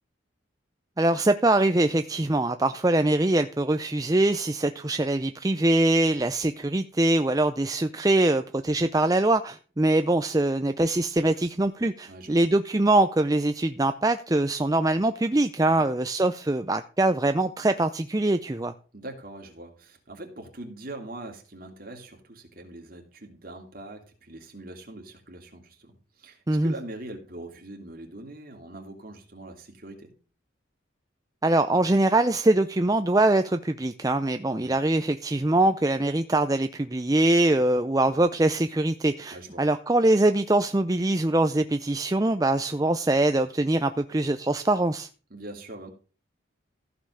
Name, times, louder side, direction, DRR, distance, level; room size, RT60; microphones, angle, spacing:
voice 1, 1.0-18.7 26.5-26.7 31.4-45.1, right 2 dB, 20° right, 9 dB, 0.5 m, -23 dB
voice 2, 12.1-12.5 18.9-30.1 34.6-34.8 39.3-39.6 45.3-45.9, right 2 dB, 45° right, 2 dB, 2.9 m, -42 dB
15.0 x 5.6 x 6.4 m, 0.36 s
head